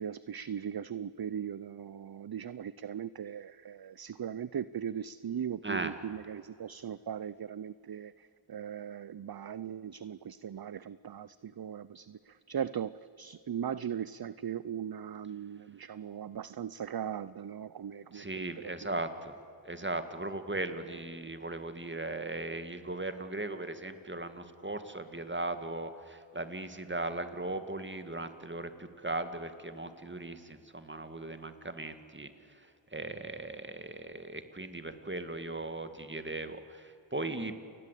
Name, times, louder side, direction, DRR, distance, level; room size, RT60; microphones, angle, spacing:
voice 1, 0.0-18.9, right 8 dB, 50° right, 17 dB, 0.6 m, -39 dB
voice 2, 5.6-5.9 18.1-19.4 19.6-37.5, right 2 dB, 25° right, 9 dB, 2.1 m, -38 dB
29.0 x 20.5 x 8.4 m, 2.7 s
wide cardioid pair, 60°, 47 cm